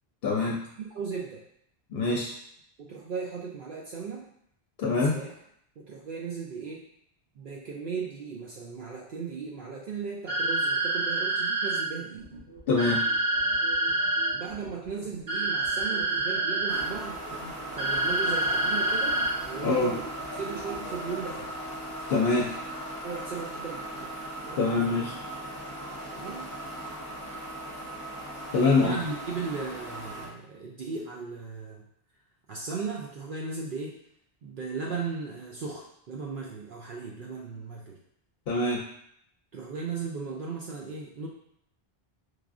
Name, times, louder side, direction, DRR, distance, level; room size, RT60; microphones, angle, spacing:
voice 1, 0.2-0.6 1.9-2.3 4.8-5.2 12.7-13.0 19.6-19.9 22.1-22.5 24.6-25.1 28.5-29.0 38.5-38.8, left 3 dB, 70° left, -2 dB, 0.7 m, -24 dB
voice 2, 0.8-1.4 2.8-4.2 5.0-5.3 5.8-6.8 7.4-12.3 14.3-17.2 17.7-21.6 22.3-22.4 23.0-24.1 24.4-25.0 26.1-26.5 28.8-31.9 32.5-34.0 34.4-38.0 39.5-41.3, right 5 dB, 60° right, -2 dB, 0.6 m, -37 dB
sound 1, 10.3-11.8 12.8-14.3 15.3-16.8 17.8-19.3, right 2 dB, 30° right, 1.0 m, -27 dB
sound 2, 12.2-21.2, right 4 dB, 80° right, 1.9 m, -45 dB
sound 3, 16.7-30.3, right 1 dB, 20° left, 0.8 m, -38 dB
4.7 x 2.4 x 2.4 m, 0.71 s
omnidirectional pair, 1.1 m